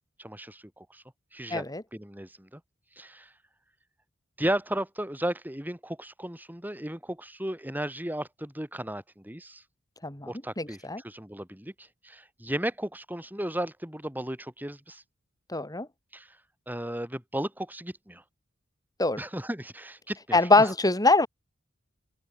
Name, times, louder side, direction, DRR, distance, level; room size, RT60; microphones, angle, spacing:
voice 1, 0.2-1.0 1.3-1.6 1.9-2.6 3.0-3.3 4.4-9.6 10.3-15.0 16.1-16.3 16.7-18.2 19.2-20.7, right 1 dB, 10° right, 5.7 m, -35 dB
voice 2, 1.5-1.8 10.0-11.0 15.5-15.9 19.0-19.2 20.3-21.3, left 2 dB, 20° left, 4.5 m, -23 dB
open air
head